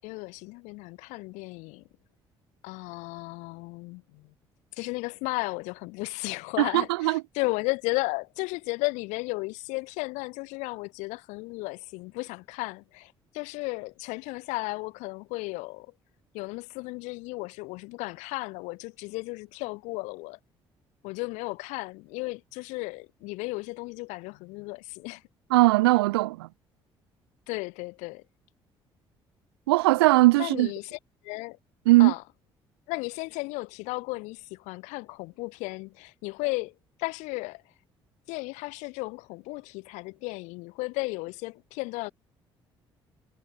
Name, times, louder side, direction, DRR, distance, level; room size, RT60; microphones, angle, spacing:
voice 1, 0.0-1.8 2.6-4.3 4.7-15.9 16.3-20.4 21.0-25.2 27.5-28.2 30.4-31.6 32.0-32.2 32.9-37.6 38.3-42.1, left 25 dB, 65° left, 6.7 m, -34 dB
voice 2, 6.6-7.2 25.5-26.5 29.7-30.7 31.9-32.1, right 20 dB, 70° right, 0.5 m, -20 dB
figure-of-eight pair, 45°, 13 cm